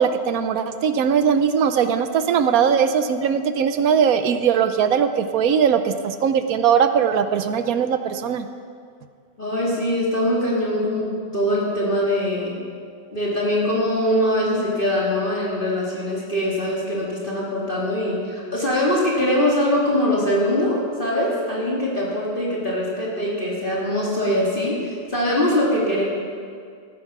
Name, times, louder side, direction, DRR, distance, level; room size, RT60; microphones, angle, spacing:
voice 1, 0.0-8.5, right 7 dB, 65° right, 9 dB, 0.9 m, -20 dB
voice 2, 9.4-12.6 13.1-26.0, left 1 dB, 30° left, -5 dB, 2.1 m, -22 dB
15.0 x 9.2 x 6.0 m, 2.2 s
omnidirectional pair, 2.0 m